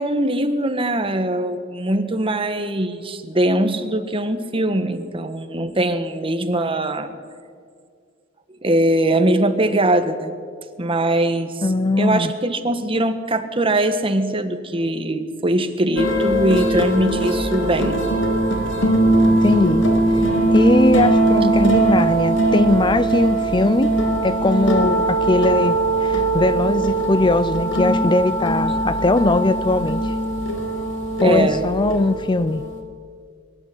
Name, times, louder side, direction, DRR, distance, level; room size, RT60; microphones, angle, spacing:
voice 1, 0.0-7.1 8.6-10.3 10.8-11.6 12.0-18.0 31.2-31.6, right 1 dB, 30° right, 1.5 m, -21 dB
voice 2, 11.6-12.3 19.3-20.2 20.5-23.9 24.2-30.1 31.2-32.6, left 2 dB, 25° left, 0.5 m, -20 dB
sound 1, 16.0-32.8, right 2 dB, 85° left, 2.9 m, -20 dB
22.5 x 12.5 x 9.5 m
head